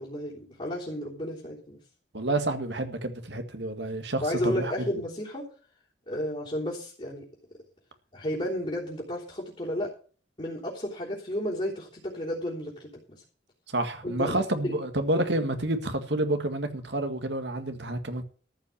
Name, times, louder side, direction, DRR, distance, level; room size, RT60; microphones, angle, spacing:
voice 1, 0.0-1.8 4.2-5.5 6.1-7.2 8.1-9.9 10.4-12.9 14.0-14.8, equal, 30° left, 3.5 m, -32 dB
voice 2, 2.1-4.7 13.7-18.2, right 1 dB, 70° right, 1.9 m, -29 dB
14.0 x 5.9 x 8.5 m
head